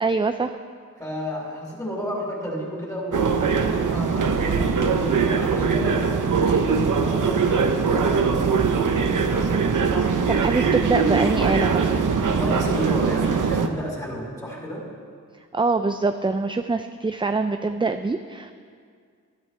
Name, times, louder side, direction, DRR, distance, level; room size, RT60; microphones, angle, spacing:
voice 1, 0.0-0.5 10.3-12.1 15.5-18.5, right 3 dB, 15° right, 8 dB, 0.4 m, -24 dB
voice 2, 1.0-8.5 12.3-14.9, equal, 10° left, -3 dB, 4.3 m, -32 dB
sound 1, 3.1-13.7, right 5 dB, 75° right, 0.9 m, -21 dB
19.5 x 12.0 x 3.4 m, 2.1 s
wide cardioid pair, 75°, 32 cm